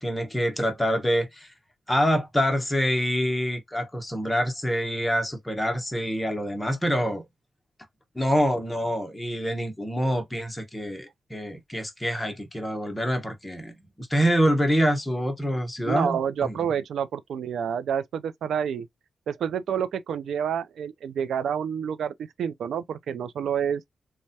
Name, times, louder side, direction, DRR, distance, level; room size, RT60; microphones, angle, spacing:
voice 1, 0.0-1.5 1.9-7.2 8.1-16.6, equal, 10° left, 0.9 m, -26 dB
voice 2, 15.8-18.9 19.3-23.8, right 8 dB, 85° right, 0.4 m, -28 dB
3.2 x 2.1 x 2.7 m
cardioid pair, 100°, 0 cm